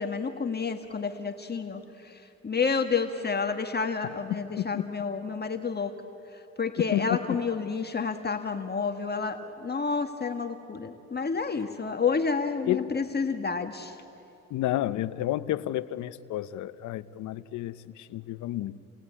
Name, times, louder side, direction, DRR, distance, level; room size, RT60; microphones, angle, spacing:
voice 1, 0.0-2.2 2.4-5.9 6.6-13.9, left 5 dB, 35° left, 6 dB, 1.6 m, -30 dB
voice 2, 4.6-4.9 6.8-7.4 12.7-12.9 14.5-18.8, left 14 dB, 90° left, 15 dB, 0.8 m, -31 dB
29.5 x 19.5 x 9.9 m, 3.0 s
cardioid pair, 70°, 29 cm